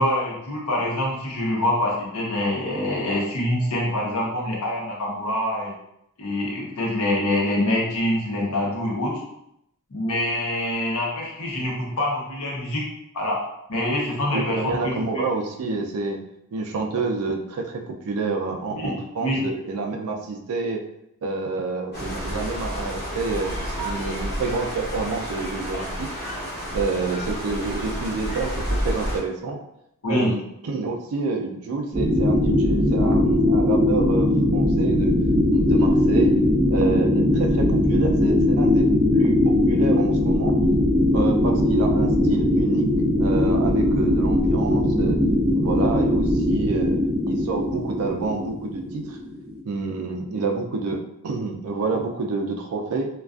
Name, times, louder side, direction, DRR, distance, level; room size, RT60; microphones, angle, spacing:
voice 1, 0.0-5.7 6.2-9.2 9.9-12.8 13.1-13.4 13.7-15.2 18.8-19.4 30.0-30.3, left 1 dB, 75° left, -3 dB, 0.7 m, -25 dB
voice 2, 14.3-16.2 16.5-20.8 21.2-26.1 26.7-29.6 30.1-35.2 35.5-36.3 36.7-38.8 39.1-40.5 41.1-42.9 43.2-45.2 45.5-47.0 47.2-49.2 49.6-53.1, right 4 dB, 70° right, 3 dB, 0.4 m, -28 dB
sound 1, 21.9-29.2, equal, 45° left, 1.2 m, -30 dB
sound 2, 31.9-49.6, left 1 dB, 25° right, 0.9 m, -20 dB
2.4 x 2.3 x 2.3 m, 0.79 s
head